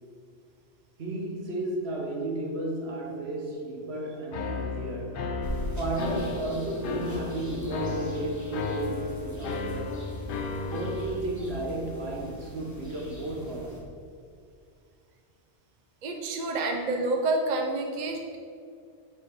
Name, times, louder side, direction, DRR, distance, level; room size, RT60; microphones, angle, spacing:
voice 1, 1.0-5.3 5.7-10.0 10.6-13.8, right 2 dB, 60° right, -1 dB, 1.5 m, -33 dB
sound 1, 4.3-11.2, left 4 dB, 55° left, 0.7 m, -34 dB
sound 2, 5.4-13.8, equal, 15° left, 1.2 m, -40 dB
voice 2, 16.0-18.4, right 2 dB, 45° right, 3 dB, 0.6 m, -28 dB
6.4 x 5.5 x 4.7 m, 2.3 s
omnidirectional pair, 1.2 m